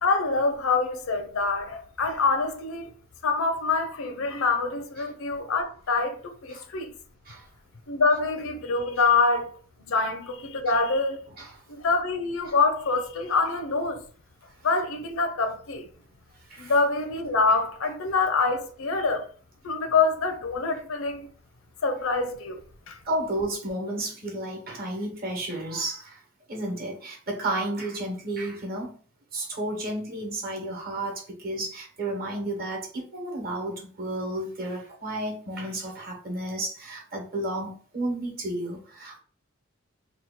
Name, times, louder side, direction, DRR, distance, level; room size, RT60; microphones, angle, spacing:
voice 1, 0.0-2.9 3.2-7.0 7.9-9.5 9.8-11.3 11.7-14.0 14.6-15.9 16.6-19.3 19.6-21.3 21.8-22.6 22.9-23.0, left 4 dB, 75° left, 0.6 m, -25 dB
voice 2, 23.0-26.2 26.5-28.9 29.3-39.2, right 1 dB, 45° right, 1.0 m, -32 dB
2.9 x 2.3 x 3.6 m
head